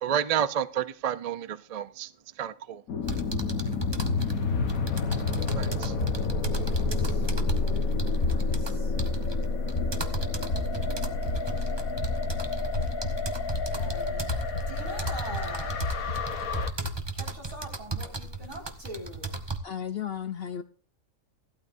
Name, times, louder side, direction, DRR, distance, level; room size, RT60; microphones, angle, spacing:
voice 1, 0.0-2.1 2.4-2.8 5.6-5.9, right 9 dB, 55° right, 0.4 m, -30 dB
sound 1, 2.9-16.7, left 3 dB, 90° left, 1.6 m, -30 dB
sound 2, 3.0-17.0, left 2 dB, 40° left, 1.6 m, -35 dB
sound 3, 3.0-19.6, right 3 dB, 20° right, 0.9 m, -37 dB
voice 2, 6.5-7.3 7.6-8.9 13.7-14.3 14.7-15.8 17.1-19.4, right 1 dB, 70° right, 5.4 m, -43 dB
voice 3, 19.6-20.6, left 9 dB, 55° left, 0.8 m, -34 dB
16.5 x 12.5 x 2.6 m
omnidirectional pair, 1.4 m